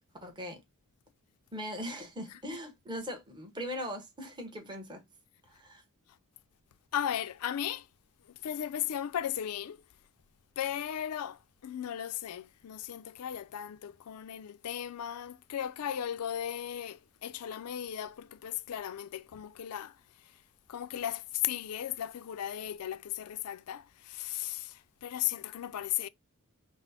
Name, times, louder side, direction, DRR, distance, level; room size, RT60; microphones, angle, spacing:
voice 1, 0.2-0.6 1.5-5.0 5.5-5.8, equal, 20° right, 1.0 m, -40 dB
voice 2, 6.9-7.9 8.3-9.8 10.6-20.3 20.7-26.1, left 10 dB, 80° left, 0.4 m, -36 dB
6.0 x 2.0 x 4.1 m
head